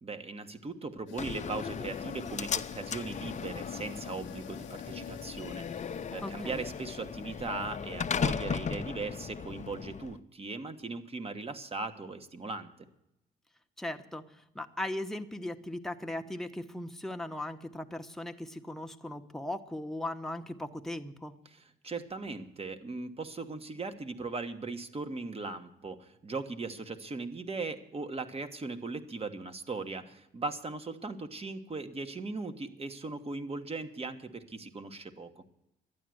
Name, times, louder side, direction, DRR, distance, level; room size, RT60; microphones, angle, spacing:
voice 1, 0.0-12.7 21.4-35.3, right 3 dB, 30° right, 9 dB, 1.3 m, -39 dB
sound 1, 1.1-8.6, left 9 dB, 70° left, 0.8 m, -48 dB
Slam, 1.2-10.2, left 6 dB, 35° left, 0.6 m, -37 dB
voice 2, 6.2-6.6 13.8-21.3, left 1 dB, ahead, 4 dB, 1.0 m, -38 dB
12.0 x 9.4 x 7.7 m, 0.84 s
cardioid pair, 90°, 20 cm